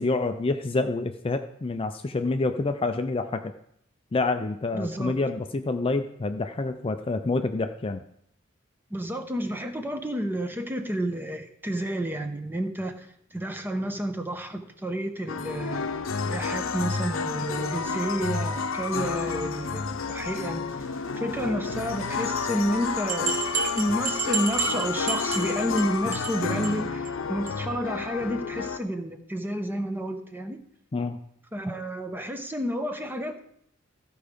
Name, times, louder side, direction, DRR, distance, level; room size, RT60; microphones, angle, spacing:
voice 1, 0.0-3.5 4.1-8.0 30.9-31.2, left 3 dB, 30° left, 7 dB, 0.4 m, -27 dB
voice 2, 4.7-5.2 8.9-15.9 16.2-20.7 21.2-23.3 23.6-30.6 31.5-33.4, equal, 10° right, 6 dB, 0.8 m, -30 dB
sound 1, 15.3-28.8, left 5 dB, 85° left, 0.7 m, -30 dB
sound 2, 23.1-25.8 26.1-26.4 26.6-26.7 27.1-27.2 27.5-27.6, right 6 dB, 45° right, 1.3 m, -30 dB
14.0 x 4.7 x 5.1 m, 0.70 s
head